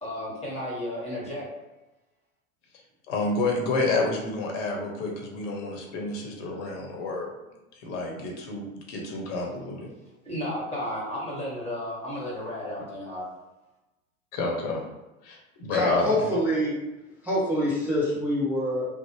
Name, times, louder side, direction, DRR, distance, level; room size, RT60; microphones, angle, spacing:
voice 1, 0.0-1.5 10.2-13.2, left 1 dB, 15° left, -5 dB, 1.2 m, -33 dB
voice 2, 3.1-7.3 7.8-9.9 14.3-14.8 15.2-16.2, left 3 dB, 50° left, 0 dB, 0.8 m, -29 dB
voice 3, 15.7-16.8 17.2-18.9, equal, 5° right, -7 dB, 0.3 m, -25 dB
2.6 x 2.0 x 2.9 m, 1.1 s
hypercardioid pair, 90°, 43 cm